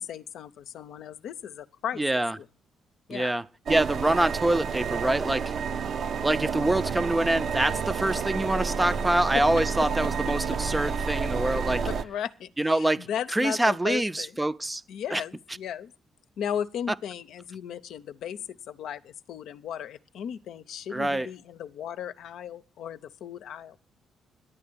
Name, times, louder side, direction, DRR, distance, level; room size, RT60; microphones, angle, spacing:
voice 1, 0.0-2.5 3.1-3.3 9.3-9.4 9.8-9.9 11.9-14.3 14.9-15.9 16.4-23.8, left 9 dB, 75° left, 0.6 m, -36 dB
voice 2, 2.0-2.4 3.1-5.5 6.2-11.8 12.6-14.8 15.1-15.2 20.9-21.3, right 1 dB, 15° right, 0.5 m, -25 dB
sound 1, 3.7-12.0, right 6 dB, 55° right, 0.7 m, -30 dB
11.0 x 8.7 x 8.4 m
cardioid pair, 90°, 0 cm